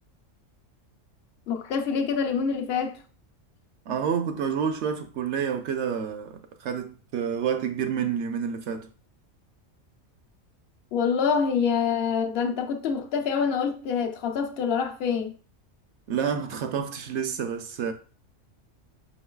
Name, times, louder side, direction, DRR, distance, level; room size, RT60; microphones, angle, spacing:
voice 1, 1.5-3.0 10.9-15.3, left 6 dB, 55° left, 0.8 m, -26 dB
voice 2, 3.9-8.9 16.1-17.9, right 7 dB, 65° right, 0.9 m, -29 dB
5.6 x 3.8 x 2.3 m
omnidirectional pair, 1.3 m